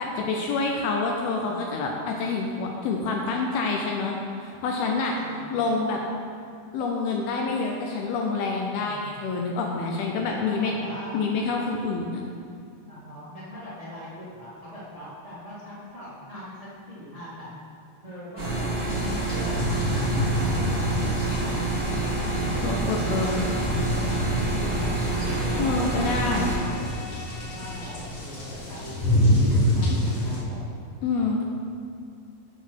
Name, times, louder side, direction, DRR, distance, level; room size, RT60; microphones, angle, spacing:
voice 1, 0.0-4.1 4.4-5.2 5.5-6.0 6.7-10.7 11.1-12.2 22.6-23.5 25.6-26.5 31.0-31.4, left 4 dB, 80° left, 0 dB, 2.3 m, -27 dB
voice 2, 1.4-1.9 5.2-5.6 8.7-9.2 10.2-11.3 12.9-17.5 18.0-22.1 22.4-24.8 25.2-26.9 27.4-30.6, equal, 35° right, -10 dB, 0.5 m, -41 dB
sound 1, 18.4-26.6, right 3 dB, 80° right, 1.2 m, -27 dB
sound 2, 18.9-30.4, left 1 dB, 45° left, 2.3 m, -28 dB
sound 3, 19.9-28.3, left 5 dB, 65° left, 2.1 m, -45 dB
8.2 x 5.9 x 6.3 m, 2.5 s
omnidirectional pair, 5.0 m